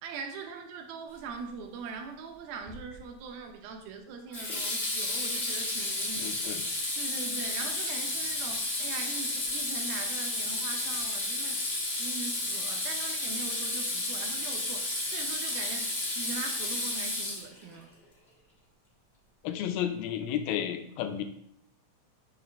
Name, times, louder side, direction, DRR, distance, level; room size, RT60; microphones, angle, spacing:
voice 1, 0.0-6.4 7.0-11.6 12.0-17.9, right 5 dB, 80° right, 4 dB, 2.7 m, -41 dB
Water tap faucet / Sink (filling or washing), 2.7-3.0 4.3-17.7, left 2 dB, 60° left, 0.6 m, -32 dB
voice 2, 6.2-6.6 19.4-21.2, left 10 dB, 85° left, 7 dB, 2.4 m, -32 dB
6.2 x 5.8 x 3.5 m, 0.71 s
omnidirectional pair, 4.2 m